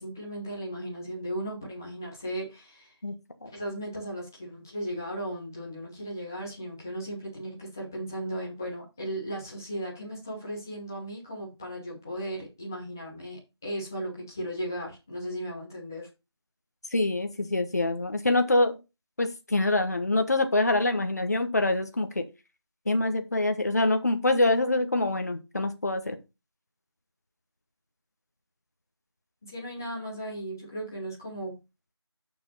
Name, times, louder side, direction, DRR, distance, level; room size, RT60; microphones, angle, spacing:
voice 1, 0.0-2.9 3.4-16.1 29.4-31.5, right 1 dB, 5° left, -5 dB, 0.8 m, -36 dB
voice 2, 16.9-18.7 19.2-22.2 22.9-26.2, left 2 dB, 35° left, 7 dB, 1.1 m, -25 dB
6.8 x 5.9 x 5.4 m, 0.26 s
figure-of-eight pair, 170°, 15 cm